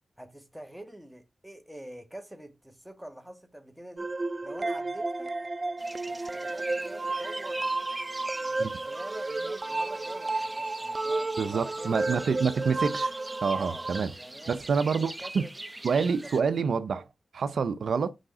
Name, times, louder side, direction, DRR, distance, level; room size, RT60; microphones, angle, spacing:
voice 1, 0.2-4.1 4.4-5.3 6.3-7.7 8.3-12.0 12.3-12.4 13.6-13.9 14.1-15.7 16.4-16.6, right 1 dB, 5° right, 1.7 m, -45 dB
sound 1, 4.0-14.0, right 2 dB, 35° right, 0.5 m, -32 dB
sound 2, 5.8-16.4, right 1 dB, 20° right, 0.9 m, -43 dB
voice 2, 11.4-13.1 13.4-14.1 14.5-15.5 15.8-17.1 17.3-18.1, right 5 dB, 80° right, 0.6 m, -27 dB
6.4 x 5.0 x 4.7 m
cardioid pair, 60°, 0 cm